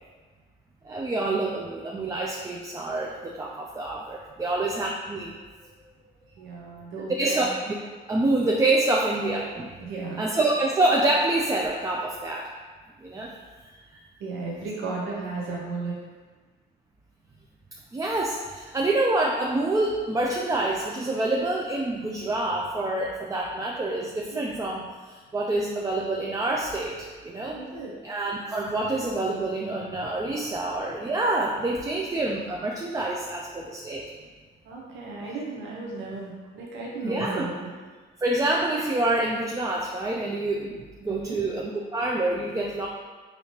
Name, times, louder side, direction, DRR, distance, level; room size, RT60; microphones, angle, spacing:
voice 1, 0.8-5.3 7.2-7.7 8.1-9.8 10.2-12.5 13.0-13.3 13.9-14.0 17.9-27.6 28.0-34.0 37.0-37.5 38.2-42.9, right 2 dB, 15° right, -1 dB, 0.3 m, -27 dB
voice 2, 6.2-7.4 9.8-10.3 14.2-16.0 24.3-24.5 27.5-27.9 30.8-30.9 34.6-37.7 41.0-41.4, right 3 dB, 85° right, -3 dB, 0.6 m, -35 dB
4.1 x 2.8 x 2.9 m, 1.4 s
cardioid pair, 90°, 20 cm